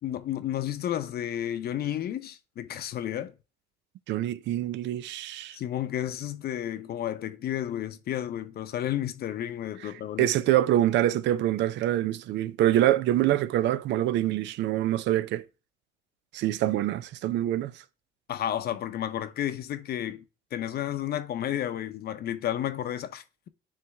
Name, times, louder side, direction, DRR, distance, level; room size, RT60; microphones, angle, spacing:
voice 1, 0.0-3.3 5.5-10.3 18.3-20.2 20.5-23.5, left 11 dB, 60° left, 0.7 m, -32 dB
voice 2, 4.1-5.6 10.2-15.4 16.3-17.7, right 13 dB, 75° right, 0.5 m, -25 dB
9.8 x 3.3 x 3.4 m
cardioid pair, 110°, 19 cm